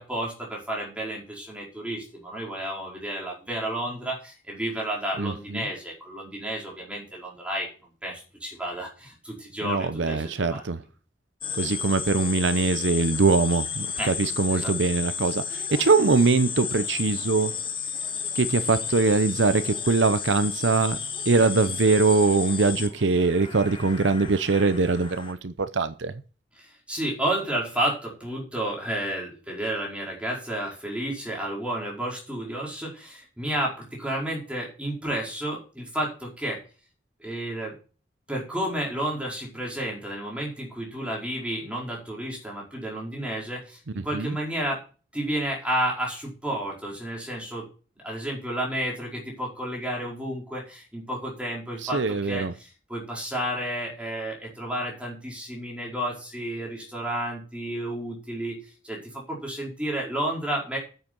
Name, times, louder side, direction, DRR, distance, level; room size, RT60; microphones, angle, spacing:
voice 1, 0.0-7.7 8.0-10.6 14.0-14.1 14.5-14.7 26.6-36.6 37.2-37.7 38.3-44.8 45.1-47.6 48.0-58.6 58.8-60.8, right 1 dB, 5° right, 4.8 m, -31 dB
voice 2, 5.2-5.7 9.6-10.8 11.6-17.5 18.3-21.0 21.3-26.2 44.0-44.4 51.8-52.5, right 3 dB, 75° right, 0.7 m, -23 dB
sound 1, 11.4-25.3, left 7 dB, 30° left, 1.3 m, -32 dB
9.2 x 7.9 x 6.2 m
head